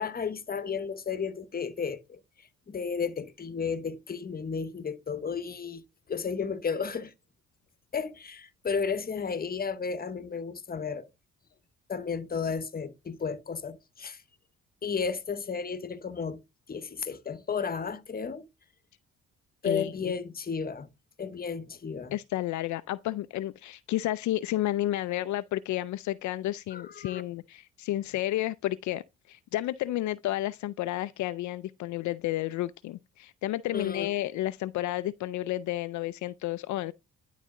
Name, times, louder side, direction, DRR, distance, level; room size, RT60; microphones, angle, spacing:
voice 1, 0.0-2.2 2.7-5.8 6.1-7.1 7.9-11.1 11.9-14.2 14.8-16.4 16.7-18.5 19.6-20.9 21.2-22.2 26.7-27.2 33.7-34.1, left 6 dB, 30° left, 1.0 m, -33 dB
voice 2, 19.6-20.1 22.1-36.9, left 15 dB, 70° left, 0.5 m, -31 dB
11.0 x 4.1 x 3.7 m
cardioid pair, 90°, 30 cm